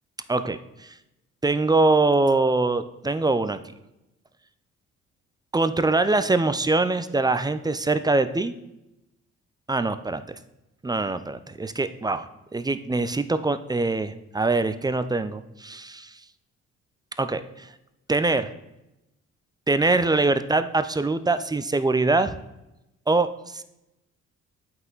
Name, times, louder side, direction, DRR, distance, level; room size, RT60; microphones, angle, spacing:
voice 1, 0.3-0.9 1.4-3.6 5.5-8.5 9.7-10.2 10.8-12.3 12.5-16.1 17.2-17.7 18.1-18.5 19.7-22.4 23.1-23.3 23.5-23.6, right 3 dB, 15° right, 11 dB, 0.5 m, -23 dB
8.1 x 5.7 x 3.9 m, 0.90 s
cardioid pair, 90°, 30 cm